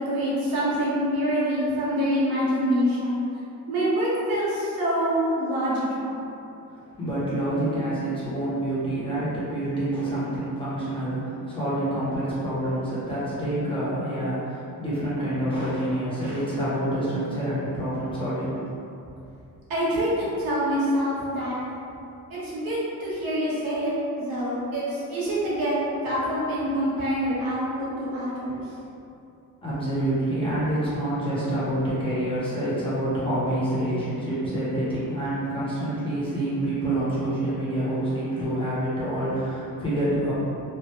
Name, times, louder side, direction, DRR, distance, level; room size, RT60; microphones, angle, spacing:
voice 1, 0.0-3.2 3.7-6.2 19.7-21.6 22.3-25.8 26.0-28.6, equal, 85° right, -8 dB, 1.1 m, -26 dB
voice 2, 6.9-18.5 29.6-40.3, right 1 dB, 15° left, -12 dB, 1.1 m, -27 dB
3.2 x 2.5 x 3.1 m, 2.7 s
cardioid pair, 150°, 34 cm